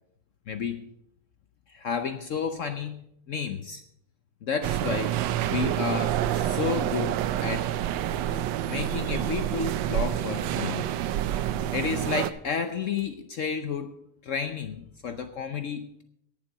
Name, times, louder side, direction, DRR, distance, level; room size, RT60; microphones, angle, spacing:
voice 1, 0.5-0.8 1.7-3.0 3.3-3.8 4.4-5.1 5.5-7.7 8.7-10.9 11.7-16.0, left 6 dB, 90° left, 8 dB, 0.6 m, -31 dB
sound 1, 4.6-12.3, right 11 dB, 75° right, 1.2 m, -28 dB
17.5 x 7.6 x 5.5 m, 0.75 s
omnidirectional pair, 2.3 m